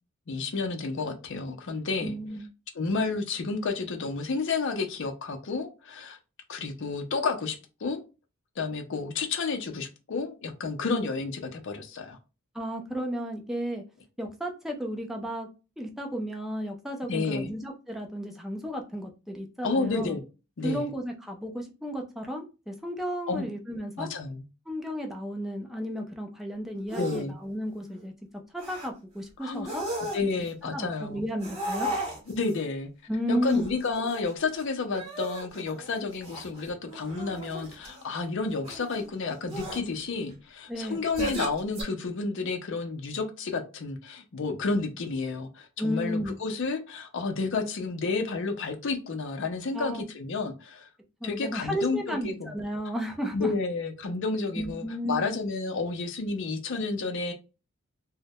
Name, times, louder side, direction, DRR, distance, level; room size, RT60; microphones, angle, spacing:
voice 1, 0.3-2.2 2.7-6.2 6.5-7.6 7.8-8.0 8.6-12.2 17.1-17.5 19.6-20.2 20.6-20.9 23.3-23.5 24.0-24.4 26.9-27.4 29.4-29.7 30.1-31.2 32.3-32.9 33.3-50.9 51.2-52.5 53.3-57.3, left 4 dB, 60° left, 5 dB, 0.5 m, -31 dB
voice 2, 2.0-2.5 12.5-13.8 14.2-15.5 15.8-20.2 20.6-24.1 24.7-28.1 28.5-29.9 30.2-30.5 30.7-31.9 33.1-33.6 40.7-41.3 45.8-46.4 49.7-50.0 51.2-53.5 54.5-55.2, equal, ahead, 2 dB, 0.4 m, -33 dB
sound 1, 26.9-27.2 27.6-28.0 28.6-28.9 29.6-30.5 31.4-32.5 33.4-34.6 34.9-38.0 38.6-39.1 39.5-39.8 41.0-41.8, right 1 dB, 30° right, 0.9 m, -36 dB
2.2 x 2.0 x 2.7 m, 0.30 s
head